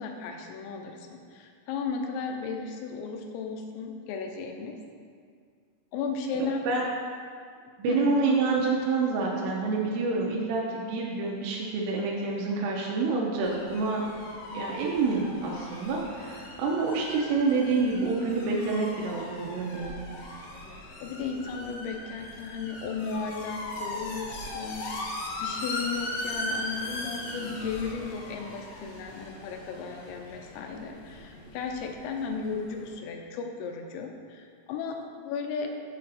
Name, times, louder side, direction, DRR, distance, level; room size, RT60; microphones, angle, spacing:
voice 1, 0.0-4.7 5.9-6.6 7.9-8.0 21.0-25.1 25.4-35.7, left 5 dB, 90° left, 3 dB, 3.4 m, -35 dB
voice 2, 6.4-6.9 7.8-14.0 14.5-20.0, right 3 dB, 85° right, -3 dB, 2.4 m, -27 dB
sound 1, 13.4-32.9, left 1 dB, 75° left, 2.9 m, -39 dB
7.5 x 6.6 x 4.1 m, 2.1 s
omnidirectional pair, 5.8 m